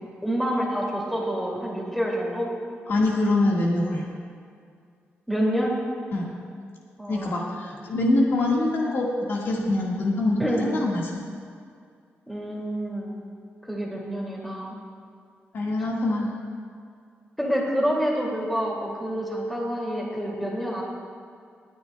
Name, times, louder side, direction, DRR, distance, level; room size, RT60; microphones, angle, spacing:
voice 1, 0.2-2.5 5.3-5.8 7.0-7.3 10.4-10.6 12.3-13.1 13.7-14.8 17.4-20.8, equal, ahead, -3 dB, 2.3 m, -27 dB
voice 2, 2.9-4.1 6.1-6.3 7.1-11.2 15.5-16.3, left 2 dB, 60° left, -3 dB, 1.6 m, -24 dB
24.5 x 9.6 x 2.2 m, 2.2 s
cardioid pair, 115°, 4 cm